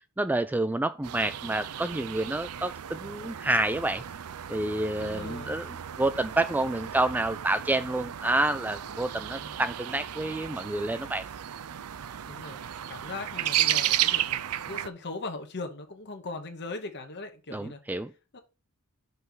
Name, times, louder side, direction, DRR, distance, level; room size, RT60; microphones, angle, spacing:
voice 1, 0.2-4.0 4.5-5.7 6.0-11.3 17.5-18.1, right 2 dB, 10° right, 0.3 m, -28 dB
sound 1, 1.0-14.9, right 12 dB, 75° right, 0.5 m, -34 dB
voice 2, 4.9-5.6 9.2-9.6 12.3-17.8 18.3-18.4, left 3 dB, 50° left, 1.2 m, -39 dB
5.6 x 5.4 x 6.1 m
head